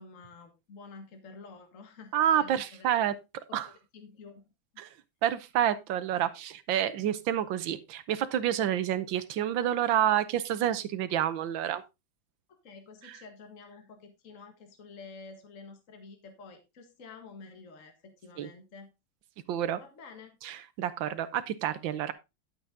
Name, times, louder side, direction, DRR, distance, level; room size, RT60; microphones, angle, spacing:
voice 1, 0.0-2.9 3.5-4.5 4.7-4.8 12.5-18.9 19.8-20.4, left 4 dB, 45° left, 1.9 m, -50 dB
voice 2, 2.1-3.1 3.5-3.7 4.8-4.9 5.2-11.8 13.0-13.2 18.4-18.5 19.5-19.8 20.4-22.1, right 10 dB, 80° right, 1.6 m, -28 dB
11.5 x 7.0 x 3.6 m
omnidirectional pair, 2.1 m